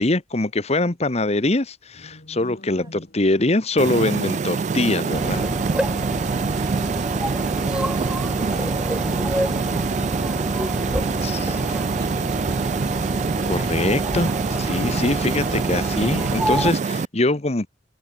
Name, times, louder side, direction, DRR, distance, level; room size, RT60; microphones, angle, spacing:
voice 1, 0.0-5.5 11.2-11.7 12.9-13.1 13.4-17.7, left 2 dB, 35° left, 1.2 m, -23 dB
sound 1, 1.9-4.2 5.8-7.0 8.7-11.0 12.3-13.4, left 1 dB, 55° left, 3.0 m, -45 dB
sound 2, 3.8-17.1, right 5 dB, 40° right, 0.4 m, -25 dB
sound 3, 5.1-16.7, equal, 5° right, 2.5 m, -28 dB
voice 2, 6.5-7.4, right 2 dB, 25° right, 7.2 m, -48 dB
head